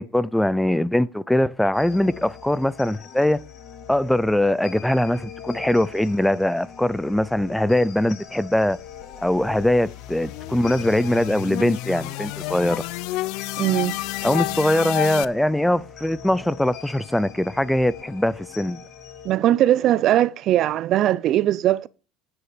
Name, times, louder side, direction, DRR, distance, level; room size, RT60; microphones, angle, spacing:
voice 1, 0.0-3.4 3.9-8.8 9.2-12.8 14.2-18.8, left 1 dB, 5° left, 0.5 m, -22 dB
sound 1, 1.7-19.3, left 7 dB, 50° left, 2.9 m, -42 dB
sound 2, 8.9-15.3, left 19 dB, 70° left, 0.5 m, -31 dB
voice 2, 13.6-14.0 19.2-21.9, right 13 dB, 50° right, 0.6 m, -20 dB
9.7 x 7.9 x 5.0 m
supercardioid pair, 120°, 0 cm